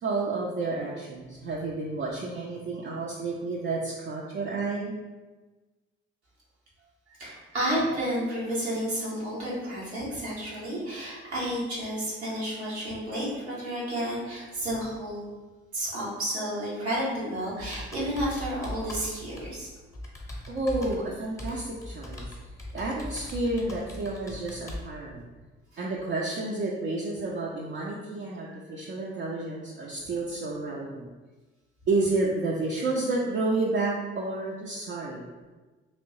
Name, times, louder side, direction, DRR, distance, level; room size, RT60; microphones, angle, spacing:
voice 1, 0.0-4.9 20.5-22.3 22.7-25.3 25.8-31.1 31.9-35.2, right 2 dB, 35° right, -4 dB, 0.5 m, -30 dB
voice 2, 7.1-15.3 15.7-19.7 28.4-28.7, equal, 80° right, -7 dB, 0.9 m, -31 dB
Computer keyboard, 17.6-24.9, left 1 dB, 10° left, 0.8 m, -40 dB
3.1 x 2.9 x 2.7 m, 1.2 s
figure-of-eight pair, 45°, 32 cm